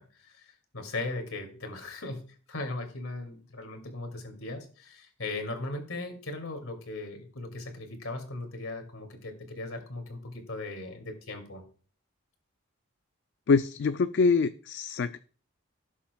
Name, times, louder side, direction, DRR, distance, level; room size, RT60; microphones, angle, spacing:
voice 1, 0.0-11.6, left 2 dB, 75° left, 4 dB, 2.4 m, -38 dB
voice 2, 13.5-15.2, left 4 dB, 55° left, 11 dB, 0.3 m, -25 dB
17.0 x 7.3 x 2.3 m, 0.41 s
head